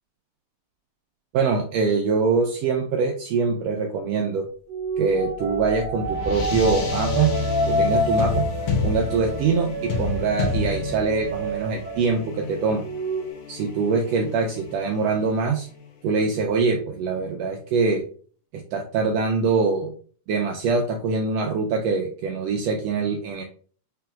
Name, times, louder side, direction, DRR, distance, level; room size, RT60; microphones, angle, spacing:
voice 1, 1.3-4.5 5.0-7.4 7.7-8.4 8.8-12.8 13.5-15.7 16.0-18.0 18.5-19.9 20.3-23.4, right 4 dB, 80° right, 2 dB, 1.6 m, -23 dB
sound 1, 4.7-12.4 12.7-13.3, right 2 dB, 55° right, 2.0 m, -28 dB
sound 2, 5.1-15.9, left 4 dB, 70° left, 1.7 m, -30 dB
5.8 x 2.9 x 2.4 m, 0.43 s
omnidirectional pair, 3.4 m